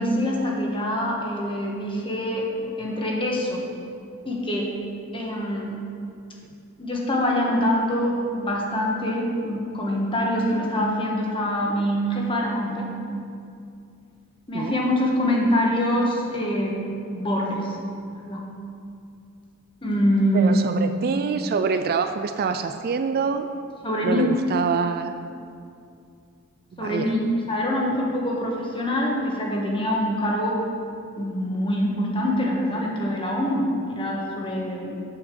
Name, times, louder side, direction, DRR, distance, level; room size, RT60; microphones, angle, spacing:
voice 1, 0.0-3.6 4.2-4.7 5.1-5.7 6.8-12.9 14.5-16.8 17.1-17.8 18.1-18.4 19.8-20.6 23.8-24.3 26.8-30.6 31.2-35.0, equal, 25° left, -2 dB, 1.4 m, -24 dB
voice 2, 20.3-23.5 24.0-25.1 26.7-27.1, right 5 dB, 45° right, 8 dB, 0.3 m, -25 dB
7.9 x 5.7 x 6.8 m, 2.5 s
head